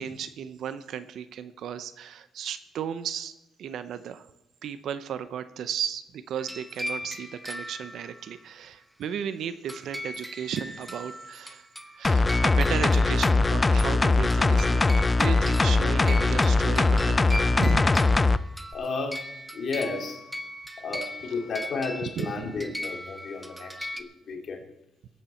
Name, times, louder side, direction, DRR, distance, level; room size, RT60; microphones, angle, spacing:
voice 1, 0.0-3.3 3.6-4.3 4.6-11.7 11.9-17.9 22.2-22.5, right 8 dB, 70° right, 12 dB, 0.7 m, -35 dB
sound 1, 6.4-8.4 9.7-24.0, left 1 dB, 5° right, 0.9 m, -39 dB
sound 2, 12.0-18.4 18.7-18.8, left 3 dB, 25° left, 0.5 m, -21 dB
voice 2, 18.7-19.2 19.5-20.2 20.8-24.6, left 4 dB, 55° left, 2 dB, 2.7 m, -33 dB
22.0 x 8.6 x 4.4 m, 0.87 s
cardioid pair, 90°, 0 cm